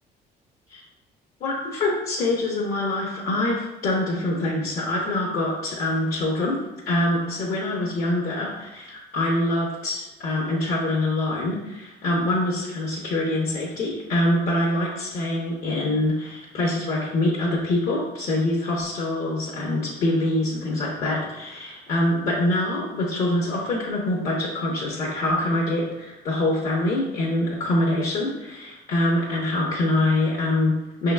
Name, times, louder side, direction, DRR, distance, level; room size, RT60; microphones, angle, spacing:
voice 1, 1.4-31.1, left 1 dB, 60° left, -4 dB, 0.9 m, -25 dB
5.4 x 3.7 x 2.3 m, 0.98 s
cardioid pair, 110°, 17 cm